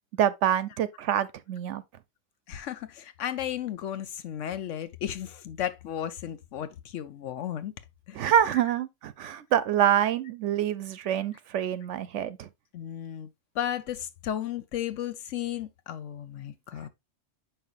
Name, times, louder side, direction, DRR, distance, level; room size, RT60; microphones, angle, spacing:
voice 1, 0.2-1.8 8.2-12.5, right 10 dB, 70° right, 0.9 m, -26 dB
voice 2, 2.5-7.7 8.1-8.2 12.7-13.3 13.5-16.9, left 10 dB, 75° left, 1.1 m, -34 dB
7.5 x 5.6 x 2.5 m
omnidirectional pair, 1.3 m